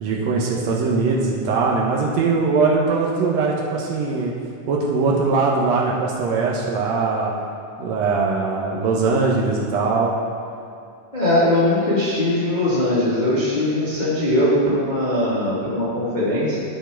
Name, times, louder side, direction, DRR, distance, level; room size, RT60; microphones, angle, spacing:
voice 1, 0.0-4.3 4.7-7.3 7.8-10.1, right 4 dB, 70° right, -2 dB, 1.8 m, -21 dB
voice 2, 11.1-16.6, left 1 dB, 30° left, -9 dB, 0.8 m, -20 dB
12.5 x 4.5 x 4.5 m, 2.4 s
omnidirectional pair, 3.5 m